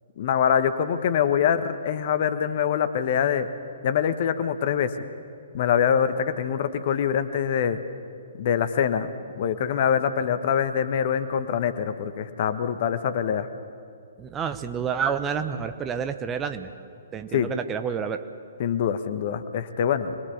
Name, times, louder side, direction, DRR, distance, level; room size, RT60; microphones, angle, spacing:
voice 1, 0.2-3.5 3.8-4.9 5.5-7.8 8.4-9.1 9.4-13.5 17.3-17.5 18.6-20.1, left 8 dB, 45° left, 10 dB, 1.3 m, -24 dB
voice 2, 14.2-16.7 17.1-18.2, right 7 dB, 15° right, 8 dB, 1.0 m, -29 dB
26.0 x 21.0 x 7.2 m, 2.4 s
figure-of-eight pair, 120°, 0 cm